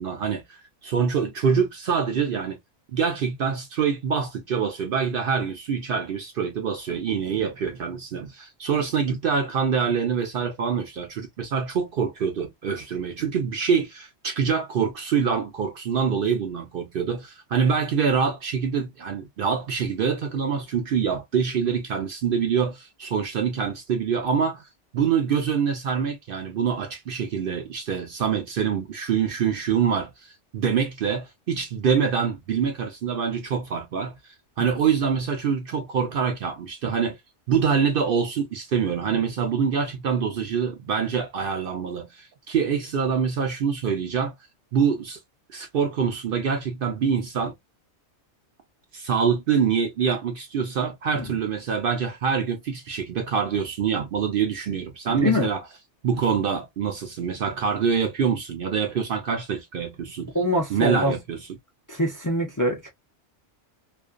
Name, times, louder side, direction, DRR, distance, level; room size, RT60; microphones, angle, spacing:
voice 1, 0.0-2.6 2.9-24.6 24.9-37.2 37.5-44.3 44.7-45.2 45.5-47.6 48.9-55.6 56.0-60.3 60.7-61.5, right 6 dB, 60° right, 0.6 m, -25 dB
voice 2, 55.1-55.5 60.3-61.2 61.9-62.9, left 1 dB, 25° left, 0.5 m, -24 dB
2.5 x 2.2 x 2.4 m
omnidirectional pair, 1.2 m